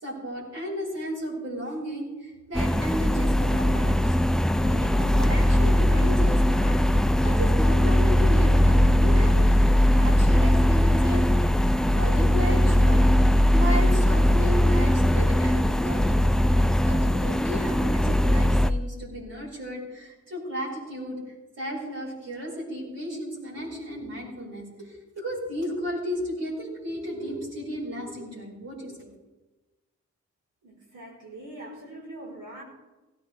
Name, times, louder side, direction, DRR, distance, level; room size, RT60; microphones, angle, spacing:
voice 1, 0.0-4.1 4.6-9.7 9.9-11.3 11.9-13.1 13.5-16.3 16.8-21.2 21.6-29.1, equal, 60° right, -6 dB, 5.6 m, -34 dB
sound 1, 2.5-18.7, left 1 dB, ahead, 0.3 m, -20 dB
voice 2, 30.6-32.6, right 1 dB, 80° right, -3 dB, 4.7 m, -42 dB
17.0 x 13.5 x 3.4 m, 1.1 s
wide cardioid pair, 105°, 29 cm